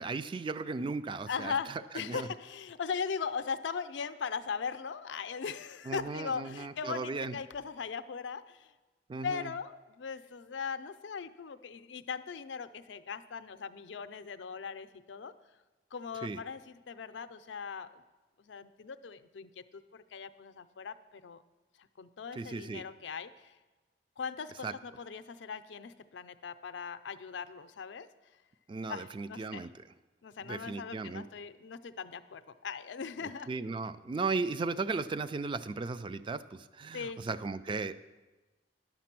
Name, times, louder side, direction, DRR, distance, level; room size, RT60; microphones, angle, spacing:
voice 1, 0.0-1.5 2.0-2.3 5.9-7.4 9.1-9.5 16.2-16.4 22.4-22.8 24.6-24.7 28.7-29.7 30.5-31.2 33.5-37.9, right 4 dB, 30° right, 14 dB, 0.3 m, -36 dB
voice 2, 1.3-8.7 9.2-15.3 15.9-18.0 18.4-21.4 21.8-23.6 24.2-28.1 28.9-29.7 30.2-33.5 36.9-37.2, left 6 dB, 90° left, 11 dB, 0.5 m, -39 dB
10.0 x 6.7 x 5.9 m, 1.2 s
head